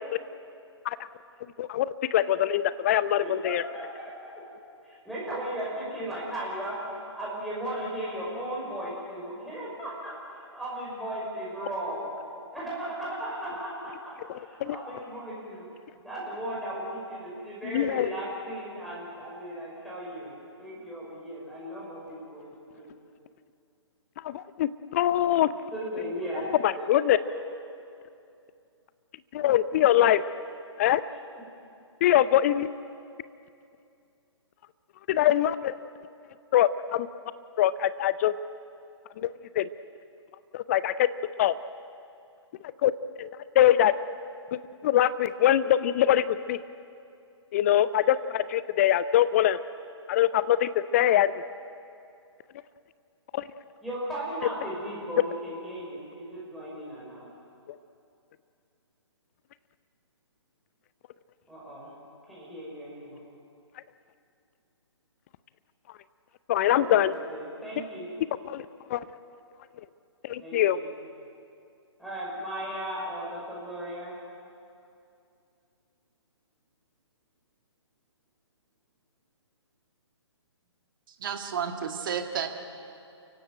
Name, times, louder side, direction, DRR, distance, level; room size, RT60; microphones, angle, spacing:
voice 1, 1.6-3.6 14.6-14.8 17.7-18.1 24.2-25.5 26.6-27.2 29.3-30.2 30.8-31.0 32.0-32.7 35.1-35.7 36.5-37.1 37.6-38.3 39.2-39.3 39.6-39.7 40.5-41.1 41.4-41.5 42.8-42.9 43.2-43.3 43.6-43.9 44.5-46.6 47.5-49.6 50.1-51.3 53.3-53.4 66.5-67.1 68.5-68.6 68.9-69.1 70.2-70.8, left 12 dB, 30° left, 15 dB, 0.6 m, -23 dB
voice 2, 3.2-4.4 4.8-6.8 7.1-12.1 12.5-14.1 14.4-15.7 16.0-22.9 25.7-27.4 53.8-57.3 61.5-61.9 62.3-63.2 66.7-68.1 70.4-70.9 72.0-74.1, right 1 dB, ahead, -8 dB, 5.9 m, -36 dB
voice 3, 81.2-82.5, right 7 dB, 45° right, 5 dB, 2.0 m, -31 dB
29.5 x 16.0 x 9.1 m, 2.5 s
figure-of-eight pair, 130°, 15 cm